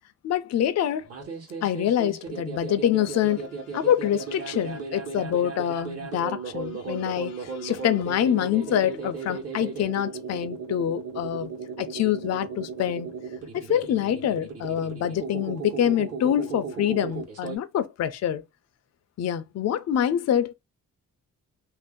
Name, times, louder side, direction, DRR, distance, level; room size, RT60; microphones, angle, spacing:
voice 1, 0.2-1.1 1.6-11.5 11.8-13.1 13.5-18.4 19.2-20.5, left 10 dB, 55° left, 0.5 m, -26 dB
sound 1, 1.0-17.6, right 5 dB, 50° right, 1.1 m, -36 dB
2.6 x 2.0 x 3.6 m
cardioid pair, 95°, 31 cm